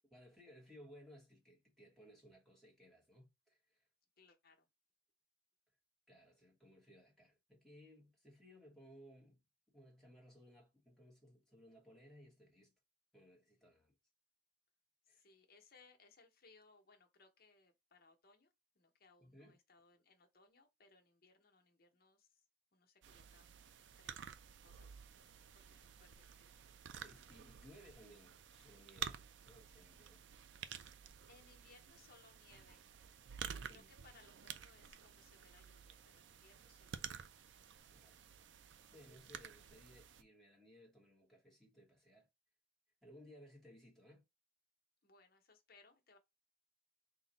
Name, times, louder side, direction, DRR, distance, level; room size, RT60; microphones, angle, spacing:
voice 1, 0.1-3.9 6.1-9.4 9.7-12.7 13.1-14.0 15.1-15.2 19.2-19.6 26.9-30.2 33.5-33.9 37.9-38.2 38.9-42.3 43.0-44.2, equal, ahead, 1.0 m, -61 dB
voice 2, 4.2-4.7 15.0-22.4 22.7-23.5 24.0-24.3 24.6-25.0 25.5-26.5 31.3-32.9 33.7-37.3 45.0-46.2, left 4 dB, 60° left, 1.0 m, -67 dB
sound 1, 23.0-40.2, right 8 dB, 90° right, 0.4 m, -52 dB
3.8 x 2.2 x 3.9 m
head